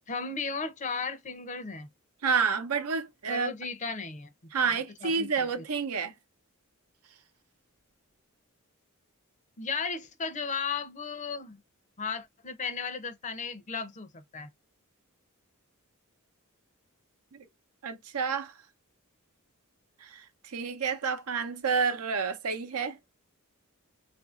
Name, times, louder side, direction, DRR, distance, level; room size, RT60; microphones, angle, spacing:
voice 1, 0.1-1.9 3.3-4.3 4.7-5.6 9.6-11.6 12.0-14.5, left 5 dB, 35° left, 0.5 m, -35 dB
voice 2, 2.2-3.5 4.5-6.1 17.3-17.4 17.8-18.5 20.0-23.0, right 5 dB, 85° right, 0.7 m, -29 dB
3.8 x 2.5 x 2.4 m
head